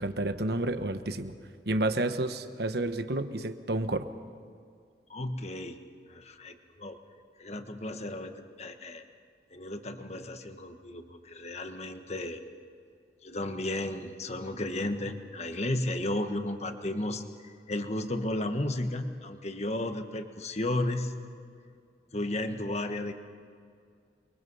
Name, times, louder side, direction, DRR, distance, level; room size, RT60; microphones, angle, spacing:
voice 1, 0.0-1.3 1.7-4.1, right 2 dB, 60° right, 9 dB, 1.2 m, -30 dB
voice 2, 5.1-5.8 6.1-7.0 7.4-9.0 9.5-12.4 13.2-21.1 22.1-23.1, left 1 dB, 40° left, 7 dB, 1.4 m, -34 dB
29.0 x 23.0 x 5.6 m, 2.2 s
head